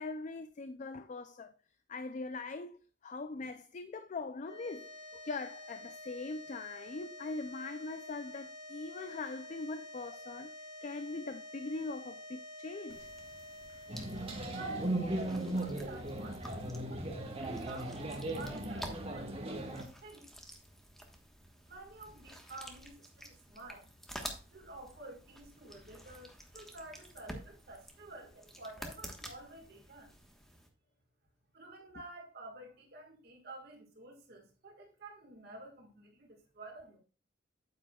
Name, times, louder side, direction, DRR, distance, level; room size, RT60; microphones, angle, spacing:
voice 1, 0.0-1.5 1.9-10.5 10.8-13.1 13.7-13.8 15.0-15.1, left 3 dB, 40° left, 0.4 m, -41 dB
sound 1, 4.4-18.8, left 1 dB, 70° left, 4.5 m, -50 dB
sound 2, 12.9-30.7, equal, ahead, 1.3 m, -50 dB
sound 3, 13.9-19.8, right 1 dB, 30° right, 1.3 m, -37 dB
voice 2, 14.5-20.3 21.7-23.9 24.5-30.1 31.5-37.0, right 2 dB, 55° right, 1.8 m, -50 dB
8.9 x 8.7 x 2.3 m
head